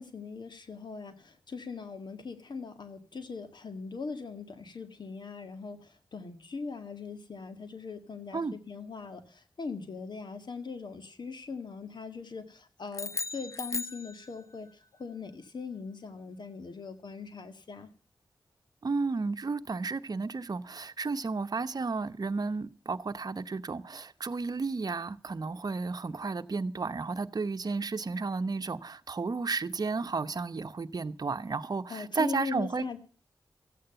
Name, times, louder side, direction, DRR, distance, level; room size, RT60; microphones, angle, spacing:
voice 1, 0.0-14.7 15.0-17.9 31.9-33.0, left 4 dB, 65° left, 1.8 m, -40 dB
sound 1, 12.9-14.7, left 3 dB, 35° left, 0.9 m, -37 dB
voice 2, 18.8-32.8, right 4 dB, 55° right, 0.9 m, -33 dB
14.5 x 8.7 x 6.8 m
cardioid pair, 40°, 8 cm